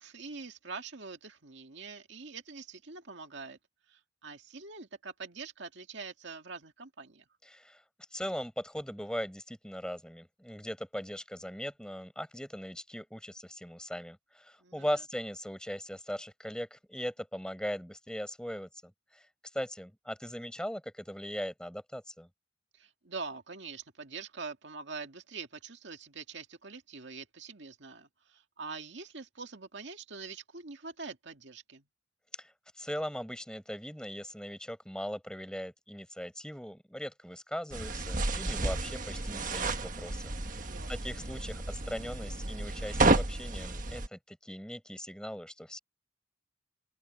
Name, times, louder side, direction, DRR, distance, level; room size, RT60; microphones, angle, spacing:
voice 1, 0.0-3.6 3.9-7.2 14.6-14.8 22.7-31.8 40.7-40.9, right 4 dB, 65° right, 2.1 m, -44 dB
voice 2, 7.4-7.8 8.1-19.2 19.5-22.3 32.4-45.8, equal, 5° left, 5.1 m, -39 dB
sound 1, 37.7-44.1, right 2 dB, 40° right, 1.5 m, -31 dB
open air
head